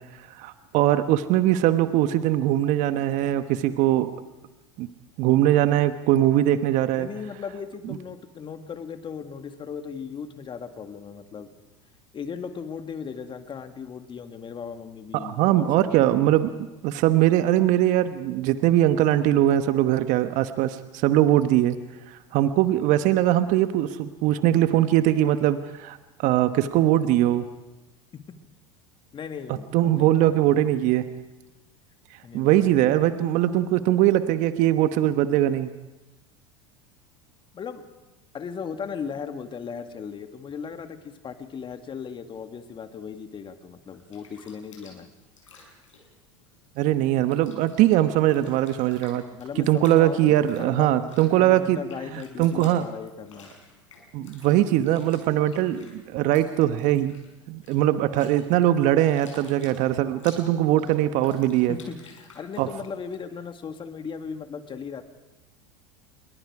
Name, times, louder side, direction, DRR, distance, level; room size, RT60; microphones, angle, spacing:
voice 1, 0.4-4.1 4.8-4.9 5.2-7.1 15.1-16.5 16.8-21.8 22.1-27.5 29.7-31.0 32.3-35.7 46.8-49.2 49.6-51.8 52.4-52.9 54.1-57.1 57.5-61.8 62.6-62.7, right 13 dB, 55° right, 10 dB, 1.2 m, -21 dB
voice 2, 6.9-11.5 12.1-16.0 28.1-28.2 29.1-30.4 32.2-33.0 37.5-37.8 38.3-45.1 49.3-51.1 51.4-53.5 61.7-65.0, left 6 dB, 30° left, 7 dB, 2.0 m, -37 dB
Bathtub (filling or washing), 43.9-46.9 47.2-63.2, left 4 dB, 90° left, 6.2 m, -52 dB
28.5 x 22.5 x 4.9 m, 1.0 s
hypercardioid pair, 85°, 16 cm